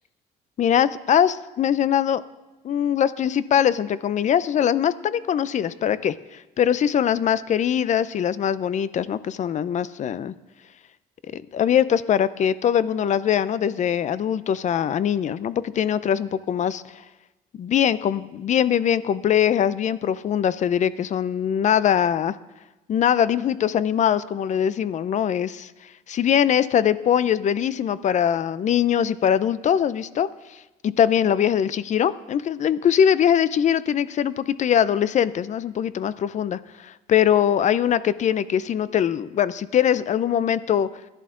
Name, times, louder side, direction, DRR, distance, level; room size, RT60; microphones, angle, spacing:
voice 1, 0.6-2.2 2.6-10.3 11.3-16.8 17.6-22.4 22.9-25.7 26.1-30.3 30.8-40.9, left 9 dB, 45° left, 16 dB, 0.5 m, -22 dB
14.5 x 11.0 x 3.8 m, 1.1 s
cardioid pair, 110°, 17 cm